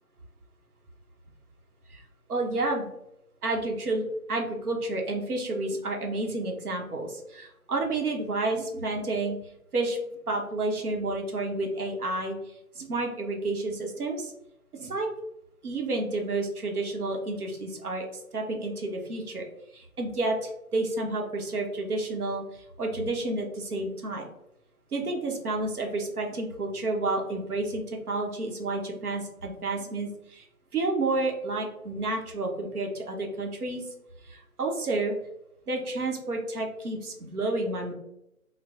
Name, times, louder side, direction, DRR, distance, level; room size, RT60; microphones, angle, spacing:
voice 1, 2.3-2.9 3.4-9.4 9.7-10.0 10.3-12.4 12.7-14.3 14.7-15.1 15.6-18.1 18.3-19.4 19.7-24.3 24.9-30.4 30.7-33.9 34.2-35.1 35.7-37.9, right 2 dB, 75° right, 1 dB, 0.9 m, -30 dB
4.1 x 2.1 x 2.3 m, 0.85 s
figure-of-eight pair, 155°, 45 cm